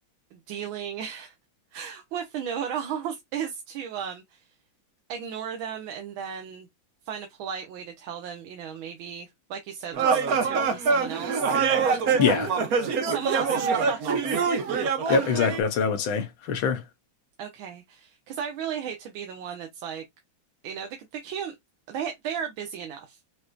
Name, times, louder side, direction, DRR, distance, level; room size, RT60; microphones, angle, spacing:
voice 1, 0.3-1.3 1.7-4.5 5.1-6.7 7.0-11.6 13.0-14.4 17.4-20.0 20.6-21.5 21.9-23.2, right 8 dB, 80° right, 1.6 m, -35 dB
sound 1, 9.9-15.6, right 5 dB, 60° right, 1.1 m, -24 dB
voice 2, 12.2-12.5 15.1-16.8, left 6 dB, 80° left, 1.8 m, -24 dB
6.3 x 2.7 x 2.2 m
omnidirectional pair, 2.2 m